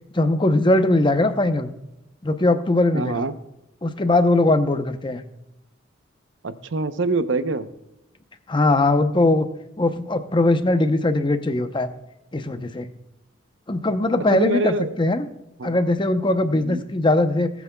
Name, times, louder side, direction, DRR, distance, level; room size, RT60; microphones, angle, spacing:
voice 1, 0.1-1.7 2.2-3.3 3.8-5.2 8.5-9.5 9.8-11.9 12.3-12.9 13.7-15.3 15.6-17.5, left 2 dB, 25° left, 9 dB, 0.7 m, -20 dB
voice 2, 2.9-3.3 6.4-7.7 14.3-15.0 15.6-15.8 16.5-16.9, right 3 dB, 70° right, 11 dB, 0.8 m, -25 dB
18.5 x 8.3 x 2.3 m, 0.89 s
head